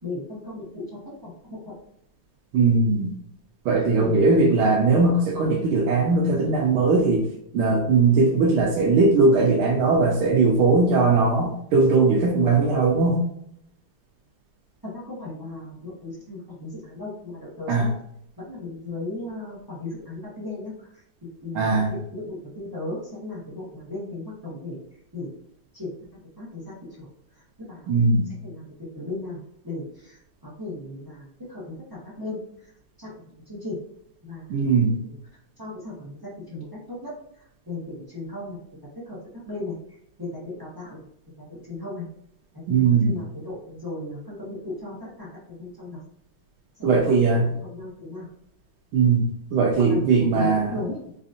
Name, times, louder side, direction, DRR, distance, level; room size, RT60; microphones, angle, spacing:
voice 1, 0.0-1.7 4.0-4.2 14.8-17.9 18.4-20.9 21.4-25.3 25.7-25.9 26.4-27.1 27.6-28.0 28.4-28.6 28.9-32.7 33.0-33.1 33.5-33.8 34.2-34.9 35.6-38.6 39.1-39.2 39.4-39.7 40.2-41.0 41.4-42.0 42.5-42.6 43.0-46.1 46.8-47.4 47.7-48.3 49.8-51.0, left 2 dB, 25° right, -7 dB, 0.5 m, -36 dB
voice 2, 2.5-3.1 3.6-7.3 7.5-13.2 17.7-17.9 21.5-21.9 27.9-28.3 34.5-35.0 42.7-43.1 46.8-47.5 48.9-50.7, right 3 dB, 80° right, 0 dB, 1.4 m, -19 dB
4.8 x 2.6 x 2.5 m, 0.72 s
omnidirectional pair, 2.4 m